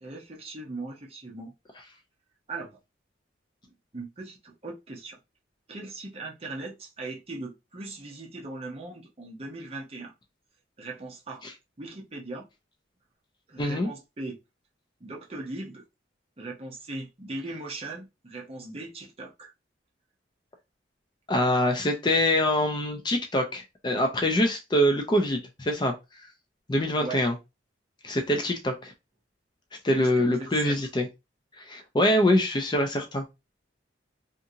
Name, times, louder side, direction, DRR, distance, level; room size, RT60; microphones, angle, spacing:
voice 1, 0.0-1.5 2.5-2.8 3.6-5.2 5.7-10.1 10.8-11.4 11.8-12.5 13.5-14.4 15.0-15.8 16.4-19.5 27.0-27.2 30.0-30.8, right 2 dB, 30° right, 0.7 m, -39 dB
voice 2, 13.6-13.9 21.3-25.9 26.7-27.3 28.0-28.9 29.8-31.1 31.6-33.2, left 1 dB, 25° left, 0.4 m, -24 dB
2.7 x 2.5 x 2.7 m
head